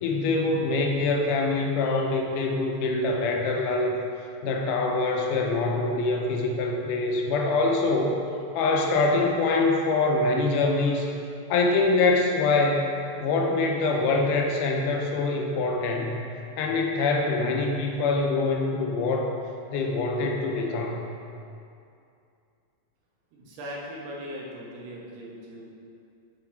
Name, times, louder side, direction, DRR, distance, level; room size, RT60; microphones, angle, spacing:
voice 1, 0.0-3.9 4.4-8.2 8.5-11.1 11.5-12.9 13.2-16.2 16.6-19.3 19.7-21.0, left 3 dB, 90° left, 1 dB, 2.2 m, -24 dB
voice 2, 23.3-25.7, equal, 80° right, -3 dB, 2.6 m, -39 dB
5.8 x 5.7 x 4.4 m, 2.5 s
omnidirectional pair, 3.6 m